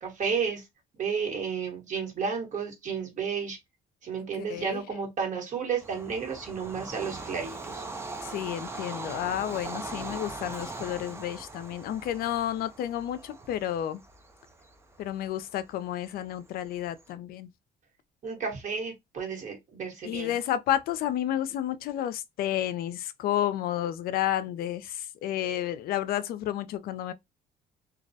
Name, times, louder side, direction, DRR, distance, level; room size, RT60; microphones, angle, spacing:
voice 1, 0.0-0.6 1.0-3.6 4.0-7.8 18.2-20.3, right 6 dB, 45° right, 1.2 m, -32 dB
voice 2, 4.5-4.8 8.2-14.0 15.0-17.5 20.0-27.1, left 11 dB, 65° left, 0.4 m, -31 dB
Bird vocalization bird call bird song / Train, 5.8-17.0, right 3 dB, 15° right, 0.4 m, -41 dB
2.2 x 2.1 x 2.7 m
cardioid pair, 110°, 17 cm